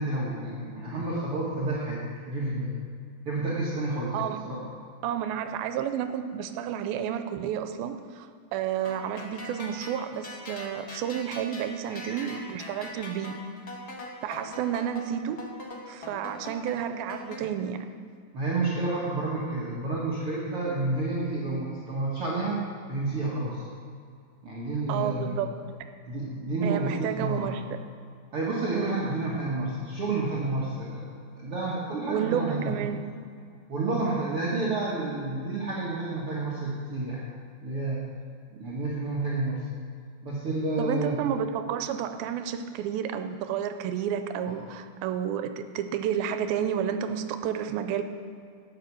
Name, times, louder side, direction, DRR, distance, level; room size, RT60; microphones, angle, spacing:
voice 1, 0.0-2.7 3.3-4.2 4.5-4.6 11.9-12.4 12.8-12.9 18.3-23.6 24.4-25.4 26.1-27.5 28.3-31.1 31.4-32.8 33.7-37.3 37.6-38.0 38.5-39.7 40.2-41.2, right 2 dB, 50° right, -6 dB, 2.0 m, -30 dB
voice 2, 5.0-13.4 14.2-15.4 15.9-17.9 24.9-25.8 26.6-27.6 28.7-29.1 32.1-33.0 40.8-48.0, right 9 dB, 85° right, 9 dB, 2.5 m, -31 dB
sound 1, 8.8-17.4, left 2 dB, 65° left, 0.9 m, -42 dB
12.5 x 9.2 x 6.2 m, 2.3 s
omnidirectional pair, 4.2 m